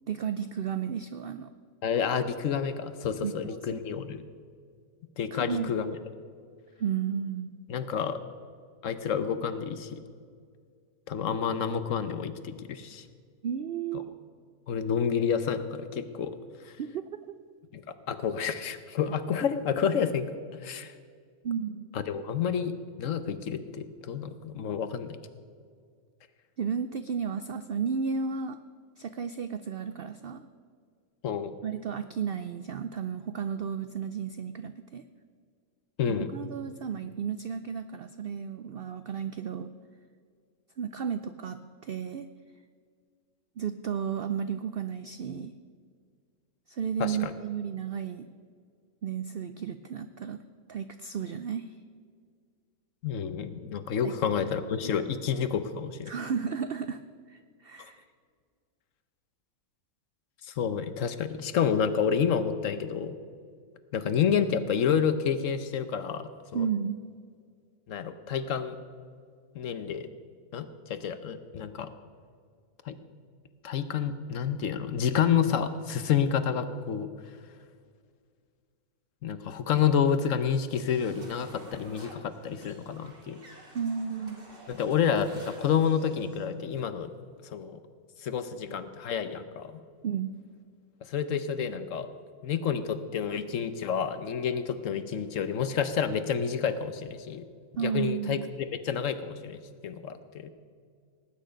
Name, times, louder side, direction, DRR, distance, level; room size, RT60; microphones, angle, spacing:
voice 1, 0.1-1.5 3.2-3.8 5.3-5.8 6.8-7.6 13.4-14.1 16.8-17.4 21.4-21.9 26.6-28.6 29.0-30.5 31.6-35.0 36.1-39.7 40.8-42.3 43.6-45.5 46.7-48.3 49.0-50.4 50.7-51.7 54.0-54.1 54.4-54.9 56.1-57.0 57.3-58.0 66.5-67.0 83.7-84.5 88.7-88.9 90.0-90.4 97.8-98.5, right 7 dB, 75° right, 10 dB, 0.5 m, -33 dB
voice 2, 1.8-4.2 5.2-6.0 7.7-8.2 8.8-10.0 11.1-13.0 14.7-16.3 16.6-16.7 17.7-17.8 18.1-20.3 20.6-20.9 21.9-25.2 31.2-31.5 36.0-36.3 47.0-47.3 53.0-56.1 57.8-57.9 60.4-63.2 63.9-66.7 67.9-68.8 69.5-70.1 70.5-71.9 72.8-73.0 73.6-77.1 79.2-83.4 84.7-87.1 87.5-87.8 88.2-89.7 91.1-92.1 92.4-97.4 97.8-99.6 99.8-100.5, left 7 dB, 65° left, 11 dB, 1.1 m, -29 dB
sound 1, 80.7-86.5, right 1 dB, 35° right, 2.4 m, -52 dB
18.5 x 9.1 x 5.1 m, 2.1 s
omnidirectional pair, 1.6 m